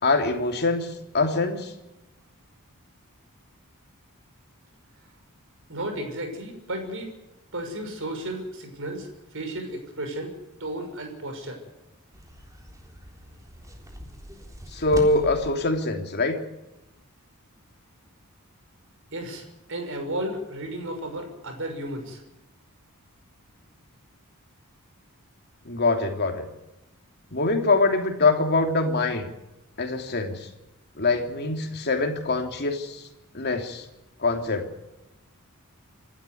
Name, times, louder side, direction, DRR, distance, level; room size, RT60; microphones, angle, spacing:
voice 1, 0.0-1.7 14.7-16.4 25.6-26.5 27.3-29.3 29.8-30.5 31.0-33.1 33.3-33.8 34.2-34.7, left 3 dB, 45° left, 4 dB, 3.1 m, -24 dB
voice 2, 5.7-7.1 7.5-9.1 9.3-10.3 10.6-11.6 19.1-22.2, right 1 dB, 60° right, 5 dB, 6.1 m, -33 dB
sound 1, 12.1-15.5, equal, 15° right, 3.7 m, -40 dB
26.5 x 12.5 x 9.5 m, 0.97 s
head